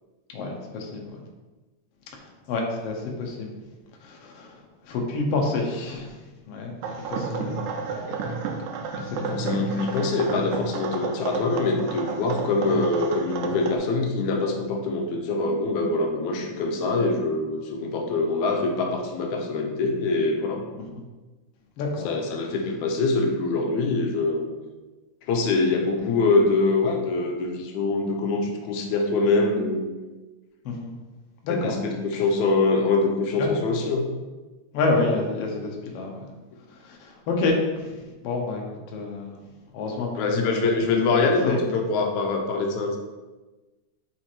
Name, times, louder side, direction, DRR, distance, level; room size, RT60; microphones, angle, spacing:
voice 1, 0.3-1.2 2.5-3.5 4.0-4.6 4.9-6.1 6.5-8.0 8.3-8.4 9.1-9.2 20.9-21.0 21.8-22.1 30.6-30.9 31.4-31.8 33.4-33.6 34.7-36.2 36.8-38.6 38.9-39.3 39.7-40.7 41.2-41.6, left 3 dB, 65° left, 0 dB, 1.7 m, -28 dB
sound 1, 6.8-13.8, right 5 dB, 85° right, 2.1 m, -31 dB
voice 2, 8.9-20.6 22.1-24.5 25.3-29.9 31.5-34.1 40.2-43.0, left 3 dB, 85° left, 2 dB, 2.1 m, -24 dB
5.1 x 4.6 x 4.3 m, 1.2 s
omnidirectional pair, 3.3 m